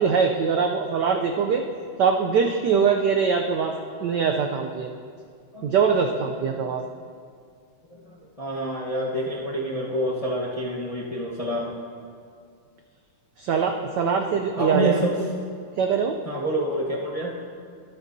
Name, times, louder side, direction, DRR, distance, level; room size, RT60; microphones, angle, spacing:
voice 1, 0.0-1.6 2.0-3.7 4.0-4.9 5.6-6.8 13.4-15.0 15.8-16.2, right 6 dB, 70° right, 3 dB, 1.0 m, -22 dB
voice 2, 7.9-11.7 14.6-15.2 16.2-17.3, equal, 25° left, -5 dB, 0.8 m, -28 dB
23.5 x 8.1 x 2.7 m, 2.2 s
omnidirectional pair, 2.4 m